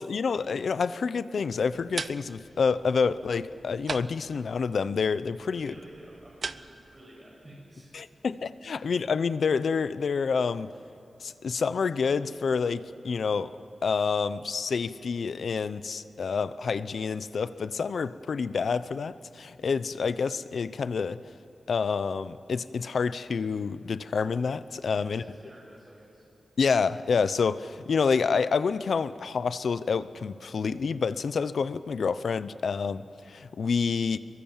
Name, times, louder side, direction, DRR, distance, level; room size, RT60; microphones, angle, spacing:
voice 1, 0.0-5.7 7.9-10.7 11.2-13.5 13.8-21.2 21.7-25.2 26.6-34.2, left 5 dB, 70° left, 14 dB, 0.7 m, -28 dB
sound 1, 1.6-7.0, right 4 dB, 45° right, 0.6 m, -41 dB
voice 2, 5.5-8.1 8.7-8.9 24.9-26.2, right 1 dB, 25° right, -3 dB, 6.6 m, -51 dB
26.5 x 23.0 x 7.4 m, 2.7 s
wide cardioid pair, 165°, 0 cm